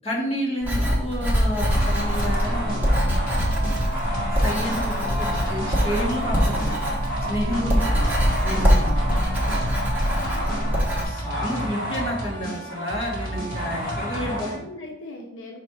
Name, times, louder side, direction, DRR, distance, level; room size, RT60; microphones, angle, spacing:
voice 1, 0.0-3.0 4.3-6.8 7.3-8.1 8.4-8.9 10.2-10.6 10.9-14.5, equal, 30° left, -5 dB, 1.9 m, -30 dB
Writing, 0.6-11.0, equal, 10° right, 1.3 m, -23 dB
sound 1, 1.5-10.6, right 7 dB, 45° right, 0.7 m, -41 dB
sound 2, 1.7-14.6, equal, 45° left, 2.0 m, -29 dB
voice 2, 7.4-8.0 10.3-10.9 14.1-15.6, left 1 dB, 75° left, 1 dB, 0.8 m, -42 dB
5.7 x 4.4 x 4.9 m, 0.85 s
head